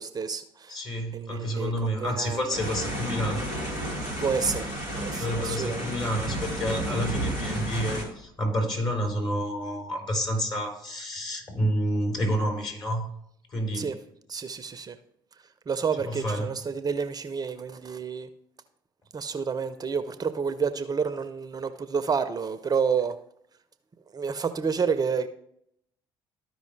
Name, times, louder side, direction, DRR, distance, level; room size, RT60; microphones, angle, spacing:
voice 1, 0.0-0.8 1.1-2.4 4.2-5.9 13.7-14.0 14.3-15.0 15.7-18.3 19.1-23.2 24.1-25.3, right 6 dB, 35° right, 12 dB, 0.6 m, -29 dB
voice 2, 0.7-3.8 5.2-13.1 13.5-13.9 16.0-16.5, equal, 40° left, 1 dB, 3.9 m, -29 dB
sound 1, 2.5-8.0, right 1 dB, 70° left, 2.6 m, -32 dB
13.0 x 5.2 x 3.2 m, 0.72 s
hypercardioid pair, 55°, 12 cm